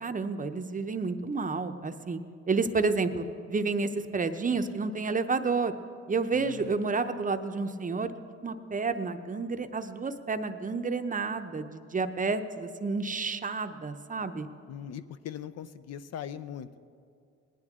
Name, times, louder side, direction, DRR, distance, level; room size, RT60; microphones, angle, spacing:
voice 1, 0.0-2.2 2.5-5.7 6.1-8.1 8.4-14.5, right 4 dB, 25° right, 8 dB, 0.7 m, -30 dB
voice 2, 6.3-6.7 14.7-16.8, left 9 dB, 55° left, 13 dB, 0.5 m, -40 dB
19.0 x 11.0 x 3.6 m, 2.4 s
cardioid pair, 90°, 30 cm